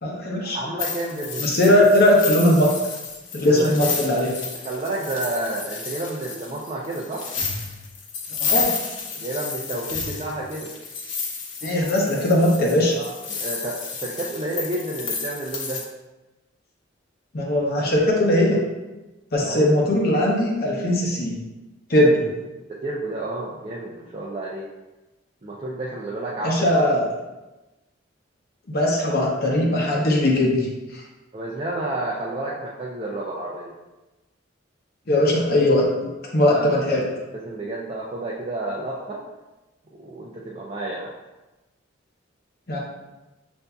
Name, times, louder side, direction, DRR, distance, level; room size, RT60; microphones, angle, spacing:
voice 1, 0.0-0.6 1.4-2.7 3.3-4.3 8.4-8.7 11.6-12.9 17.3-18.6 19.3-21.4 21.9-22.2 26.4-27.0 28.7-30.7 30.9-31.0 35.1-35.9 36.3-37.0 42.7-42.8, left 1 dB, 50° left, -2 dB, 0.8 m, -19 dB
voice 2, 0.5-1.5 3.4-3.9 4.6-7.2 9.1-10.7 12.9-15.8 19.4-19.7 22.7-24.7 25.4-26.8 31.3-33.7 36.4-39.2 40.0-41.1, right 2 dB, 30° right, -4 dB, 0.4 m, -30 dB
sound 1, 0.8-15.8, left 5 dB, 90° left, 0.8 m, -31 dB
6.7 x 2.6 x 2.3 m, 1.1 s
head